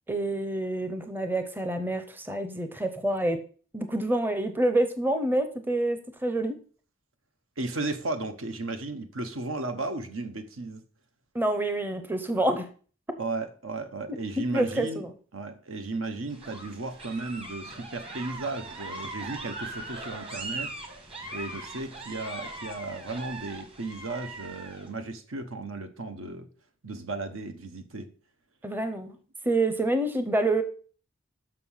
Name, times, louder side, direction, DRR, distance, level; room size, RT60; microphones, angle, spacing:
voice 1, 0.1-3.4 3.7-6.6 11.3-12.7 14.4-15.1 28.6-29.2 29.4-30.6, right 1 dB, 10° right, 9 dB, 0.7 m, -27 dB
voice 2, 7.6-10.8 13.2-15.0 15.3-20.7 21.3-26.5 26.8-28.1, right 2 dB, 75° right, 8 dB, 1.1 m, -35 dB
sound 1, 16.3-24.9, right 2 dB, 30° right, 1.5 m, -40 dB
6.7 x 6.0 x 5.6 m, 0.42 s
head